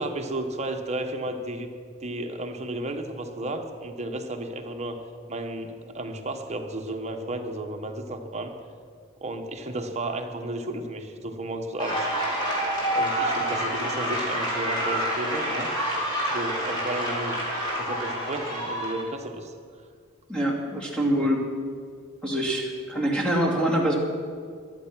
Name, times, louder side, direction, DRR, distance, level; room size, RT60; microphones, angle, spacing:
voice 1, 0.0-1.7 2.0-5.0 5.3-8.5 9.2-12.1 12.9-15.7 16.3-17.4 17.8-19.5, right 1 dB, 30° right, 4 dB, 1.1 m, -33 dB
sound 1, 11.8-19.0, equal, 20° left, 4.4 m, -28 dB
voice 2, 20.3-21.5 22.2-24.0, right 1 dB, 5° left, -1 dB, 2.4 m, -25 dB
14.5 x 11.5 x 6.1 m, 2.1 s
head